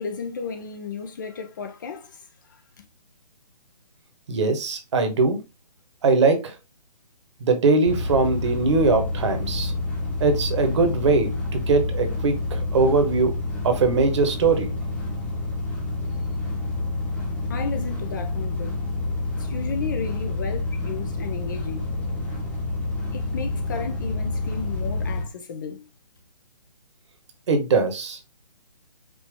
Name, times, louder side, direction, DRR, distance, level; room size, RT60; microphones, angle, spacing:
voice 1, 0.0-2.8 17.5-18.8 19.4-21.9 23.1-25.9, left 5 dB, 30° left, 0.5 m, -34 dB
voice 2, 4.3-5.4 6.0-6.5 7.4-9.7 10.2-13.3 13.6-14.7 27.5-28.2, right 4 dB, 45° right, 1.1 m, -21 dB
sound 1, 7.8-25.2, left 2 dB, 5° left, 1.0 m, -28 dB
5.1 x 2.8 x 3.5 m
figure-of-eight pair, 140°, 21 cm